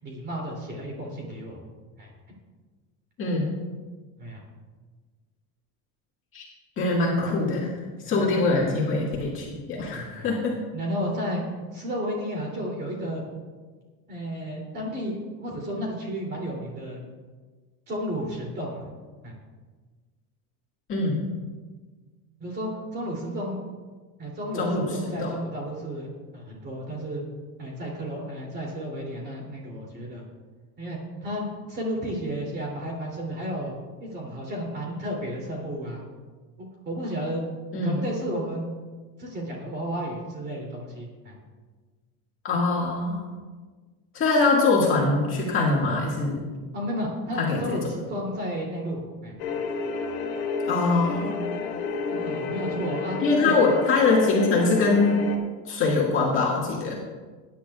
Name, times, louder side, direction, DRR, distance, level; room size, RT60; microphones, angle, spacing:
voice 1, 0.0-1.6 2.0-2.1 4.2-4.4 8.0-8.3 9.9-10.3 10.7-11.4 11.7-13.2 14.1-17.0 17.9-18.8 19.2-19.4 22.4-23.6 24.2-27.2 27.6-30.2 30.8-33.7 34.0-36.0 36.6-37.4 37.8-38.7 39.2-41.4 46.7-49.3 52.1-53.5, equal, 25° right, -2 dB, 3.0 m, -32 dB
voice 2, 3.2-3.5 6.3-6.5 6.8-10.6 20.9-21.3 24.5-25.3 37.7-38.0 42.4-43.2 44.1-46.4 47.4-47.8 50.7-51.4 53.2-55.2 55.7-56.9, left 3 dB, 35° left, -4 dB, 1.9 m, -23 dB
sound 1, 49.4-55.4, left 4 dB, 80° left, 1.9 m, -31 dB
20.0 x 10.0 x 2.4 m, 1.4 s
cardioid pair, 175°, 38 cm